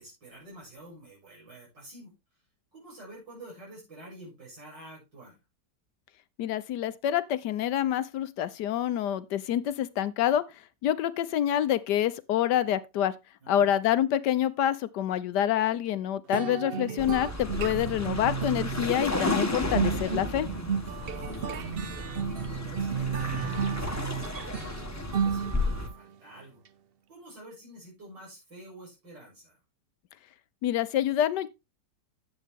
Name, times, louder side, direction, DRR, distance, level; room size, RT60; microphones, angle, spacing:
voice 1, 0.0-2.1 2.7-5.4 13.4-13.7 20.9-21.9 22.3-26.6 27.1-29.6, right 1 dB, 85° right, 7.5 m, -49 dB
voice 2, 6.4-10.4 10.8-13.1 13.5-20.5 30.6-31.5, left 11 dB, 75° left, 1.3 m, -27 dB
sound 1, 16.3-26.0, right 7 dB, 65° right, 0.5 m, -33 dB
sound 2, 17.0-25.9, left 2 dB, 10° left, 1.0 m, -33 dB
10.0 x 7.7 x 3.5 m
omnidirectional pair, 1.9 m